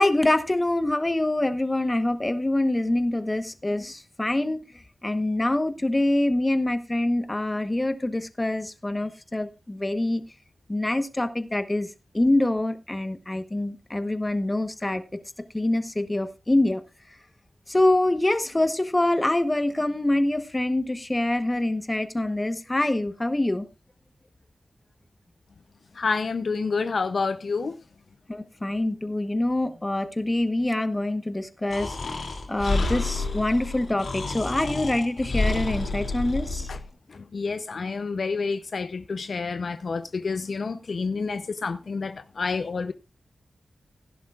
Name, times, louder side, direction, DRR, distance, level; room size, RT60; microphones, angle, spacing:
voice 1, 0.0-4.6 5.0-10.2 10.7-11.9 12.1-15.0 15.5-16.8 17.7-23.6 28.3-32.2 32.5-36.7, left 1 dB, 20° left, 1.1 m, -25 dB
voice 2, 26.0-27.7 36.7-36.8 37.1-42.9, left 4 dB, 60° left, 0.6 m, -29 dB
Breathing, 31.7-36.8, left 3 dB, 85° left, 2.7 m, -29 dB
16.5 x 11.0 x 2.4 m
wide cardioid pair, 80°, 0 cm